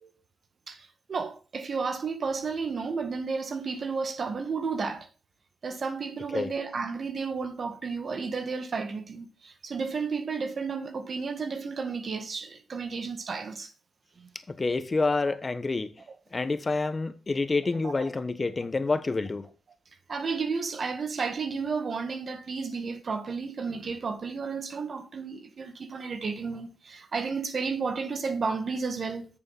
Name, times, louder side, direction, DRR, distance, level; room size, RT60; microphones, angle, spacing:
voice 1, 0.7-5.1 5.6-13.7 14.2-14.3 15.3-15.4 17.8-17.9 20.1-29.3, right 5 dB, 55° right, 1.7 m, -32 dB
voice 2, 14.5-16.0 16.3-19.5, left 3 dB, 40° left, 1.1 m, -28 dB
8.6 x 7.0 x 4.3 m
supercardioid pair, 45°, 0 cm